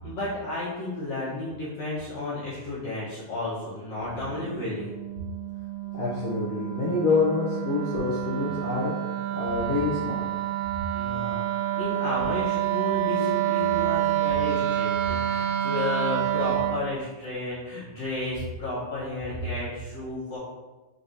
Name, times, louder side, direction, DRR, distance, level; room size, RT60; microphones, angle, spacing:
voice 1, 0.0-5.0 10.9-11.4 11.8-20.4, left 2 dB, 65° left, -10 dB, 2.0 m, -32 dB
Wind instrument woodwind instrument, 3.9-16.8, right 13 dB, 80° right, 1.7 m, -28 dB
voice 2, 5.9-8.9 9.3-10.2, left 4 dB, 90° left, -5 dB, 1.4 m, -26 dB
4.8 x 3.9 x 2.6 m, 1.2 s
omnidirectional pair, 3.6 m